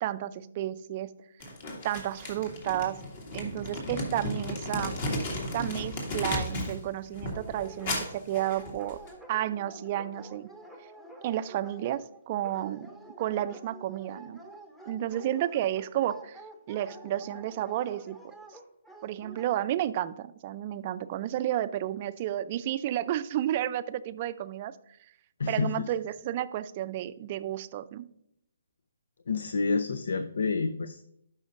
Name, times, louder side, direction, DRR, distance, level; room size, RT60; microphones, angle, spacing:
voice 1, 0.0-1.1 1.8-3.0 3.3-5.0 5.5-9.0 9.3-10.5 11.2-12.9 13.2-14.4 14.9-16.4 16.7-18.2 19.0-24.7 25.5-28.1, right 12 dB, 35° right, 13 dB, 0.4 m, -31 dB
Crumpling crinkling, 1.4-6.8 7.1-9.1, left 1 dB, 45° left, 2.2 m, -35 dB
Dog, 7.3-19.5, right 1 dB, 5° left, 0.9 m, -49 dB
voice 2, 25.4-25.9 29.3-31.1, left 4 dB, 70° left, 12 dB, 0.4 m, -29 dB
11.5 x 5.6 x 2.6 m, 0.73 s
figure-of-eight pair, 140°, 0 cm